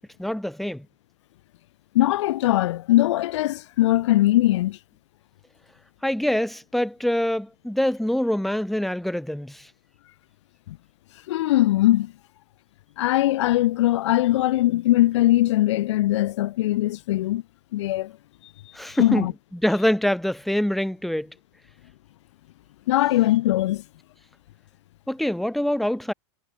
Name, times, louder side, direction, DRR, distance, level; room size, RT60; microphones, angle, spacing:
voice 1, 0.2-0.9 6.0-9.7 18.7-21.3 25.1-26.1, left 1 dB, ahead, 2.6 m, -25 dB
voice 2, 1.9-4.8 10.7-10.8 11.3-12.1 13.0-17.4 17.7-18.1 19.0-19.3 22.9-23.8, left 15 dB, 65° left, 2.1 m, -21 dB
supercardioid pair, 155°, 16 cm